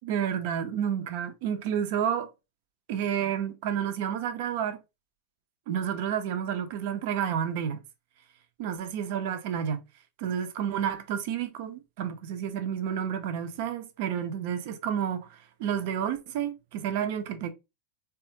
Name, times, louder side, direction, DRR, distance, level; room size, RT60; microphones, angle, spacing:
voice 1, 0.0-2.3 2.9-4.8 5.7-7.8 8.6-9.8 10.2-17.5, right 8 dB, 60° right, 0.4 m, -30 dB
3.5 x 2.3 x 2.6 m
hypercardioid pair, 95°, 0 cm